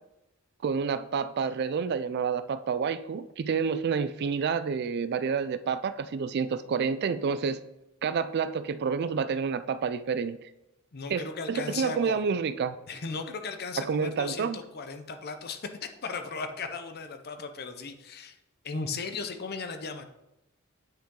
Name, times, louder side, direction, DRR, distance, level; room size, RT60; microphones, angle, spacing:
voice 1, 0.6-7.6 8.0-10.4 11.1-12.8 13.8-14.6, right 6 dB, 50° right, 13 dB, 0.3 m, -29 dB
voice 2, 10.9-12.2 12.9-18.4 18.6-20.0, left 4 dB, 45° left, 8 dB, 0.7 m, -36 dB
8.8 x 5.6 x 3.8 m, 0.91 s
head